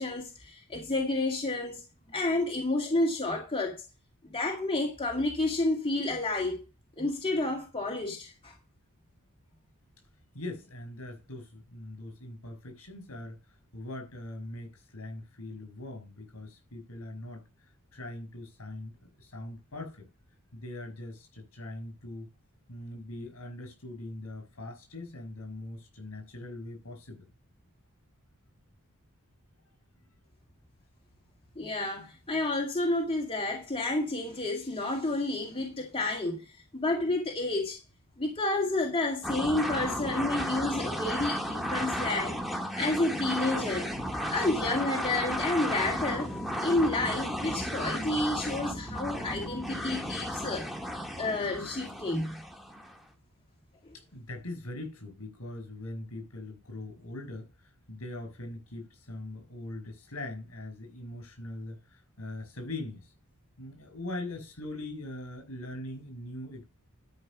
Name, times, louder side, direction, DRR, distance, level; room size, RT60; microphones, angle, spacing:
voice 1, 0.0-1.8 2.1-3.8 4.3-6.6 7.0-8.5 31.6-37.8 38.2-42.4 42.7-43.9 44.3-50.7 51.2-52.4 53.9-54.0, left 2 dB, 25° left, 2.1 m, -30 dB
voice 2, 10.3-17.4 17.9-20.1 20.5-22.3 22.7-27.3 53.9-63.1 63.6-66.6, left 1 dB, 70° left, 5.9 m, -41 dB
sound 1, 39.2-53.0, equal, ahead, 1.6 m, -34 dB
12.0 x 5.6 x 6.1 m
head